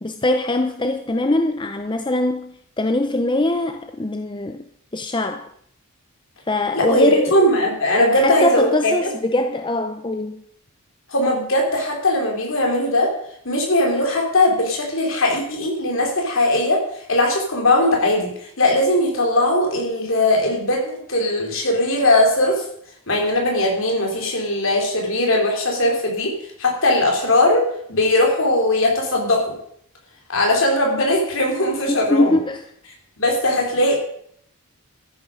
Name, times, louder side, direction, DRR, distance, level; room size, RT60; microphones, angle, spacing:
voice 1, 0.0-4.6 4.9-5.5 6.5-7.3 8.1-10.4 31.9-32.6, left 2 dB, 20° left, 0.6 m, -22 dB
voice 2, 6.7-9.1 11.1-13.1 13.4-16.8 17.1-22.6 23.1-26.3 26.6-29.5 30.3-32.3 33.2-34.0, left 1 dB, 60° left, 3.9 m, -19 dB
13.5 x 11.0 x 5.1 m
head